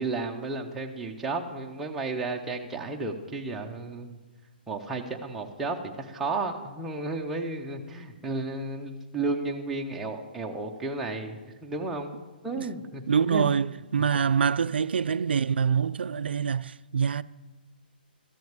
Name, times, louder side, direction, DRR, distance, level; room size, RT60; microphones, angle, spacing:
voice 1, 0.0-4.2 4.7-12.2 12.4-13.5, right 3 dB, 5° right, 0.6 m, -33 dB
voice 2, 13.1-17.2, right 6 dB, 85° right, 0.4 m, -25 dB
13.5 x 6.3 x 8.8 m
hypercardioid pair, 175°, 5 cm